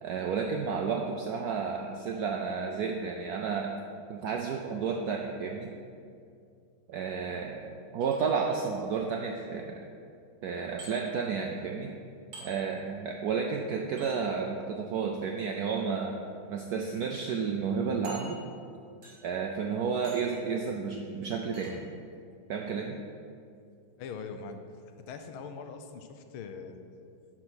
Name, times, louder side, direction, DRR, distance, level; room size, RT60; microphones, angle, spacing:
voice 1, 0.0-3.8 4.1-5.7 6.9-9.9 10.4-11.9 12.4-16.2 16.5-18.4 19.2-21.8 22.5-23.0, right 5 dB, 80° right, 2 dB, 0.8 m, -32 dB
sound 1, 8.0-8.6 10.8-10.9 12.3-12.5 14.0-14.1 15.4-15.7 16.4-16.5 16.9-17.0 18.0-18.7 19.0-19.4 20.0-20.4 21.5-21.7, right 2 dB, 65° right, 2.6 m, -48 dB
voice 2, 24.0-24.6 25.0-26.8, left 5 dB, 85° left, 7 dB, 1.5 m, -42 dB
10.5 x 4.4 x 6.1 m, 2.4 s
omnidirectional pair, 2.2 m